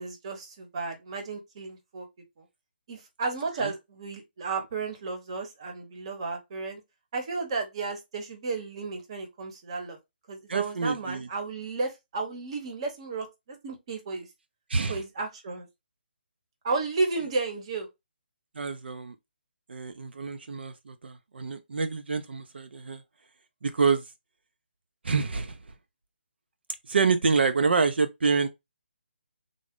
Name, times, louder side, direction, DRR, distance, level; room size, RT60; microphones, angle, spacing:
voice 1, 0.0-2.1 2.9-6.8 7.1-10.0 10.3-13.3 13.6-14.3 14.9-15.7 16.6-17.9, right 3 dB, 30° right, 0.8 m, -33 dB
voice 2, 10.5-11.3 14.7-15.0 18.6-19.1 19.7-23.0 23.6-24.0 25.0-25.6 26.9-28.5, right 4 dB, 70° right, 0.4 m, -27 dB
3.7 x 2.0 x 3.5 m
hypercardioid pair, 170°, 6 cm